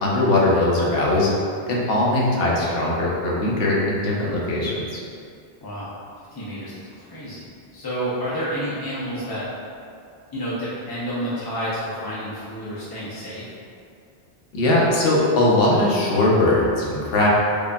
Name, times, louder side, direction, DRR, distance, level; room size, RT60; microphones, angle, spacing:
voice 1, 0.0-1.3 1.7-5.0 14.5-17.3, left 2 dB, 60° left, -4 dB, 0.9 m, -20 dB
voice 2, 6.3-9.4 10.3-13.5, equal, 35° left, -9 dB, 0.4 m, -30 dB
4.9 x 2.6 x 2.2 m, 2.3 s
omnidirectional pair, 1.2 m